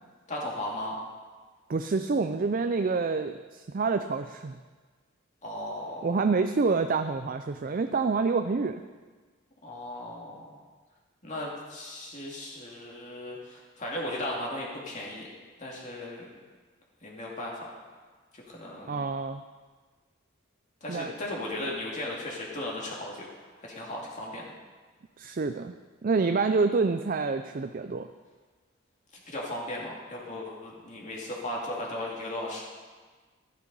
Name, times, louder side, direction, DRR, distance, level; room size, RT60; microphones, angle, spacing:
voice 1, 0.3-1.0 5.4-6.1 9.6-10.6 11.2-15.3 15.6-16.3 17.0-17.7 18.3-19.0 20.8-23.3 23.6-24.5 29.3-32.6, left 1 dB, 35° left, -3 dB, 2.3 m, -36 dB
voice 2, 1.7-4.6 6.0-8.8 18.9-19.4 20.9-21.1 25.2-25.7 26.0-28.1, right 4 dB, 45° right, 8 dB, 0.4 m, -27 dB
12.5 x 10.5 x 5.4 m, 1.4 s
head